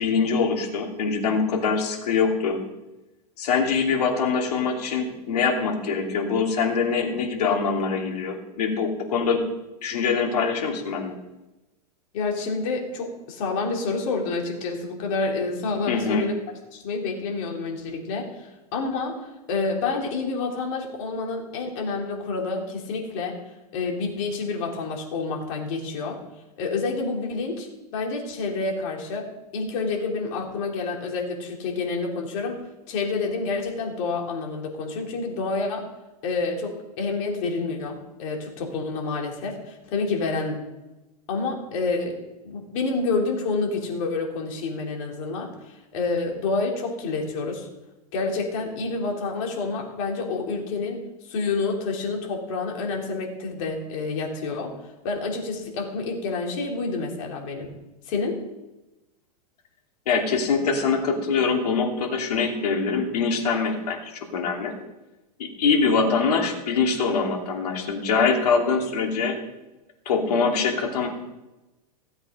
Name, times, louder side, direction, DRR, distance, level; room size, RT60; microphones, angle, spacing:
voice 1, 0.0-2.6 3.4-9.4 9.8-11.1 15.9-16.3 60.1-64.7 65.4-69.4 70.1-71.1, left 5 dB, 80° left, 2 dB, 2.8 m, -24 dB
voice 2, 12.1-16.4 16.7-23.4 23.7-26.2 26.6-35.9 36.2-40.6 41.3-42.2 42.4-47.7 48.1-54.7 55.0-57.7 58.1-58.4, left 3 dB, 55° left, 0 dB, 3.6 m, -28 dB
16.5 x 8.0 x 5.4 m, 1.0 s
hypercardioid pair, 120°, 20 cm